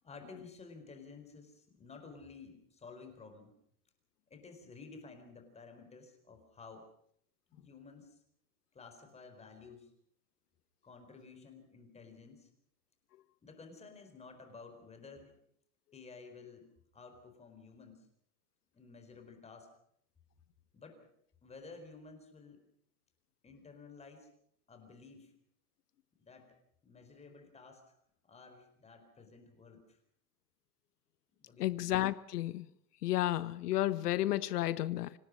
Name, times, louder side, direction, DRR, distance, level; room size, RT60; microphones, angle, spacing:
voice 1, 0.0-3.5 4.3-6.9 7.5-8.2 8.7-9.9 10.8-12.5 13.4-15.3 15.9-16.7 16.9-18.1 18.7-19.7 20.7-21.0 21.4-22.6 23.4-24.3 24.7-25.3 26.2-26.6 26.8-27.8 28.2-30.0 31.4-31.8, left 4 dB, 15° left, 4.4 m, -53 dB
voice 2, 31.6-32.6 33.0-35.1, left 14 dB, 85° left, 0.9 m, -32 dB
26.0 x 18.0 x 6.3 m
supercardioid pair, 140°, 45 cm